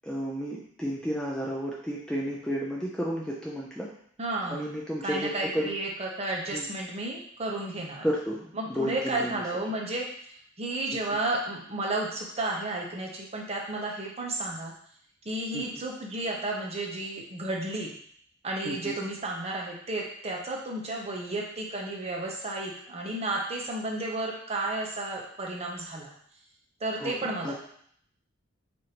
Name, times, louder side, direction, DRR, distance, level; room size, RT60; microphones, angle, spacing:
voice 1, 0.0-3.9 4.5-5.7 6.5-6.7 8.0-9.4 15.5-15.6 18.6-19.0 27.0-27.6, equal, 5° left, -4 dB, 0.4 m, -32 dB
voice 2, 4.2-4.8 5.0-8.0 8.5-10.1 10.6-14.7 15.2-17.9 18.4-26.1 26.8-27.6, right 2 dB, 30° right, -1 dB, 0.6 m, -32 dB
4.8 x 2.6 x 2.9 m, 0.64 s
head